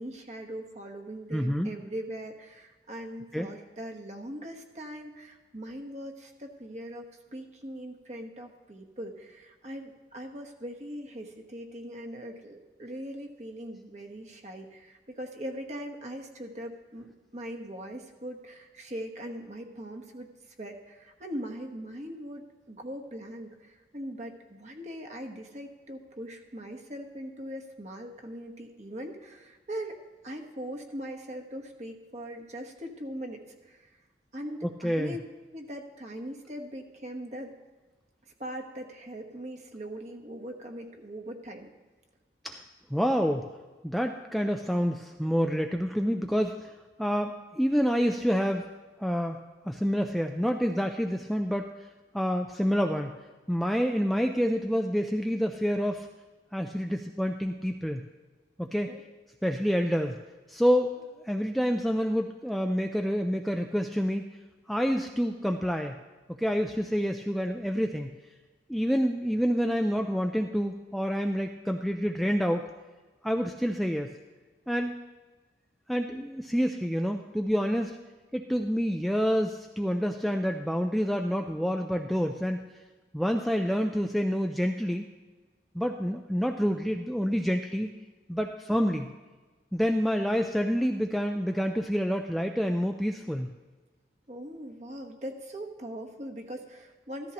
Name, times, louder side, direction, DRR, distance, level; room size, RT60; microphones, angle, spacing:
voice 1, 0.0-7.0 7.3-20.3 20.6-29.9 30.2-33.8 34.3-35.2 35.5-37.5 38.4-41.7 58.9-59.0 94.3-97.3, equal, 40° right, 3 dB, 1.2 m, -40 dB
voice 2, 1.3-1.7 3.3-3.5 34.8-35.1 42.4-42.6 42.9-43.5 43.8-46.7 47.0-48.6 49.0-49.4 49.7-51.7 52.1-53.1 53.5-56.1 56.5-58.0 58.6-58.9 59.4-60.2 60.5-60.9 61.3-64.2 64.7-66.0 66.4-68.1 68.7-72.6 73.2-74.1 74.7-74.9 75.9-77.9 78.3-82.6 83.1-85.1 85.8-87.9 88.3-89.1 89.7-93.5, equal, ahead, 3 dB, 0.3 m, -27 dB
14.5 x 13.5 x 2.9 m, 1.3 s
head